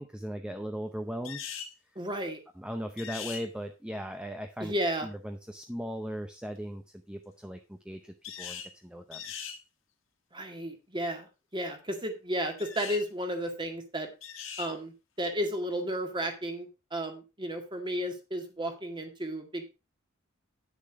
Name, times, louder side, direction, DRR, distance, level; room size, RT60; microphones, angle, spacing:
voice 1, 0.0-1.5 2.6-4.7 5.0-9.2, equal, 5° right, 6 dB, 0.7 m, -38 dB
sound 1, 1.2-1.7 3.0-3.5 8.2-8.7 9.1-9.6 12.6-13.0 14.2-14.7, left 8 dB, 65° left, 1.8 m, -40 dB
voice 2, 2.0-2.4 4.6-5.1 10.3-14.1 14.6-19.6, equal, 20° right, 5 dB, 1.9 m, -33 dB
9.9 x 7.0 x 4.7 m, 0.29 s
head